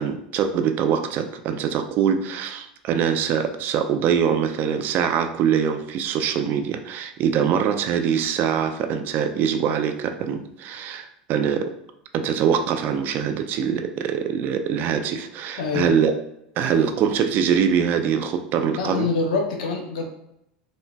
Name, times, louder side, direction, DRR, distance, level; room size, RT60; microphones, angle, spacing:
voice 1, 0.0-11.7 12.1-16.1 16.6-19.1, right 7 dB, 50° right, 7 dB, 0.4 m, -23 dB
voice 2, 15.6-15.9 18.8-20.0, left 4 dB, 80° left, 2 dB, 0.6 m, -25 dB
3.9 x 2.1 x 2.2 m, 0.78 s
hypercardioid pair, 95°, 4 cm